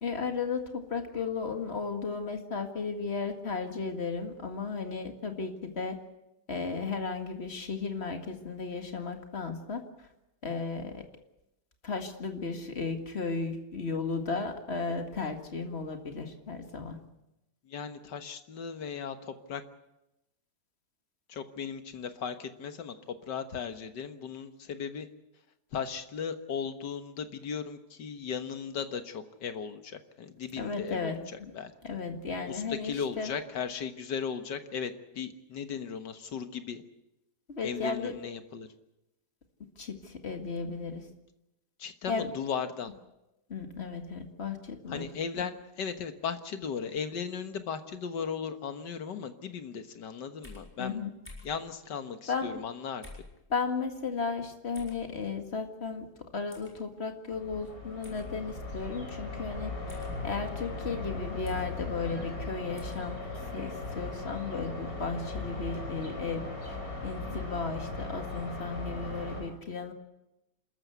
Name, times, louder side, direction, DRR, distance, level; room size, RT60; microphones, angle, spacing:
voice 1, 0.0-6.0 6.5-9.8 10.4-11.0 11.8-17.0 30.6-31.5 31.8-33.3 37.6-38.1 39.8-41.1 42.1-42.3 43.5-45.1 45.4-45.5 50.8-51.1 52.3-52.5 53.5-56.1 56.3-66.4 66.7-66.8 67.0-69.9, left 4 dB, 40° left, 5 dB, 2.2 m, -35 dB
voice 2, 17.7-19.6 21.3-23.0 23.3-25.1 25.7-31.1 31.5-31.7 32.5-36.8 37.6-38.7 41.8-42.9 44.9-51.0 51.4-53.0, left 6 dB, 85° left, 9 dB, 2.0 m, -37 dB
sound 1, 50.4-50.7 51.3-51.6 53.0-53.3 54.7-55.0 56.5-56.7 58.0-58.3 59.9-60.1 61.5-61.7 62.8-63.0, left 2 dB, 5° left, 5.2 m, -48 dB
sound 2, 57.3-69.4, left 2 dB, 55° left, 5.6 m, -38 dB
28.0 x 13.5 x 8.1 m, 0.92 s
omnidirectional pair, 1.8 m